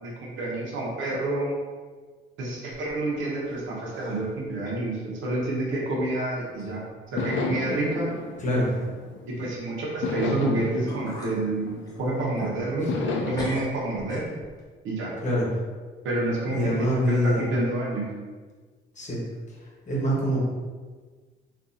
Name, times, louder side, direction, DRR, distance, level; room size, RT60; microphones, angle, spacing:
voice 1, 0.0-1.5 2.4-6.8 7.1-8.1 9.3-14.2 14.8-15.1 16.0-18.1, right 2 dB, 80° right, -4 dB, 0.9 m, -28 dB
sound 1, 2.7-3.6 3.9-4.4 4.8-4.9 5.8-5.9 6.6-6.7 7.1-7.5 7.8-7.9 10.4-10.5 10.9-11.4 11.8-13.1 13.3-14.6, equal, 20° left, 1.1 m, -39 dB
sound 2, 6.6-6.7 7.2-9.4 10.0-12.3 12.9-13.5, left 5 dB, 70° left, 0.5 m, -32 dB
voice 2, 8.4-8.7 12.8-12.9 15.2-15.5 16.5-17.5 18.9-19.2 19.5-20.4, equal, 40° left, -4 dB, 1.2 m, -25 dB
3.7 x 2.6 x 2.7 m, 1.4 s
cardioid pair, 90°, 20 cm